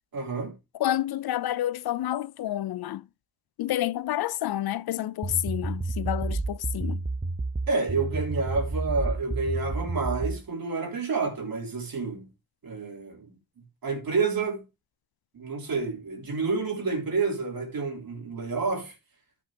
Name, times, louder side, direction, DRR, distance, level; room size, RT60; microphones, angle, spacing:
voice 1, 0.1-0.6 7.7-12.3 12.6-14.7 15.3-18.9, right 4 dB, 65° right, 3.4 m, -29 dB
voice 2, 0.8-3.0 3.6-7.0, left 13 dB, 80° left, 0.5 m, -29 dB
sound 1, 5.2-10.4, right 2 dB, 15° right, 0.8 m, -30 dB
13.0 x 6.2 x 2.8 m
cardioid pair, 70°, 37 cm